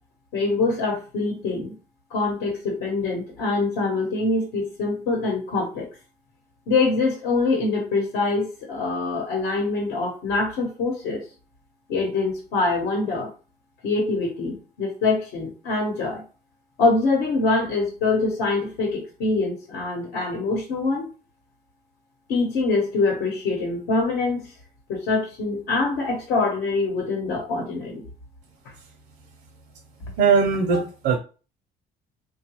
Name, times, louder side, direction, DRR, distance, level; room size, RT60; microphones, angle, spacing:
voice 1, 0.3-1.7 2.1-5.9 6.7-11.2 11.9-13.3 13.8-16.2 16.8-21.1 22.3-24.5 24.9-28.0 30.7-30.8, left 3 dB, 85° left, 1 dB, 1.0 m, -24 dB
voice 2, 30.2-31.2, right 5 dB, 75° right, 2 dB, 0.6 m, -20 dB
3.8 x 2.3 x 2.9 m, 0.34 s
cardioid pair, 110°, 17 cm